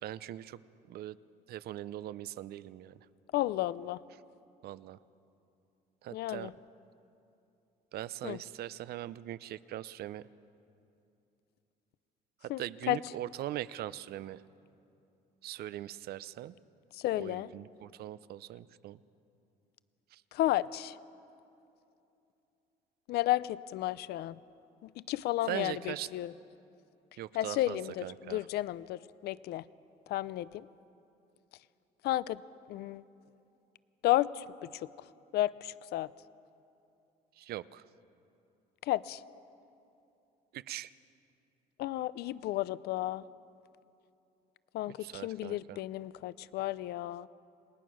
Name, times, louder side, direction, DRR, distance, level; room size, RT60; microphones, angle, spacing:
voice 1, 0.0-0.6 0.9-1.2 1.5-3.0 4.6-5.0 6.0-6.5 7.9-10.2 12.4-14.4 15.4-16.5 17.2-19.0 20.1-20.2 25.5-26.1 27.2-28.4 37.4-37.8 40.5-40.9 45.0-45.8, right 13 dB, 70° right, 16 dB, 0.7 m, -41 dB
voice 2, 3.3-4.0 6.1-6.5 8.2-8.4 12.5-12.6 12.9-13.0 16.9-17.5 20.3-21.0 23.1-24.4 24.8-26.3 27.3-29.7 30.1-30.7 32.0-32.4 32.7-33.0 34.0-34.9 35.3-36.1 38.8-39.2 41.8-43.3 44.7-47.3, left 15 dB, 75° left, 18 dB, 0.5 m, -32 dB
28.5 x 19.5 x 6.3 m, 2.7 s
cardioid pair, 110°, 17 cm